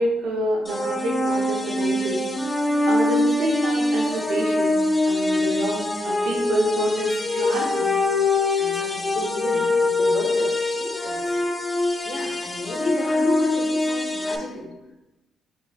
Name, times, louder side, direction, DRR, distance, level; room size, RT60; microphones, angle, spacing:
voice 1, 0.0-2.2 2.9-4.8 5.0-7.9, right 1 dB, 85° right, -1 dB, 0.9 m, -27 dB
sound 1, 0.6-14.4, left 2 dB, 20° left, 0.5 m, -23 dB
voice 2, 8.6-11.5 12.0-14.7, left 2 dB, 60° left, 0 dB, 1.2 m, -32 dB
4.5 x 3.9 x 2.5 m, 1.0 s
cardioid pair, 90°, 0 cm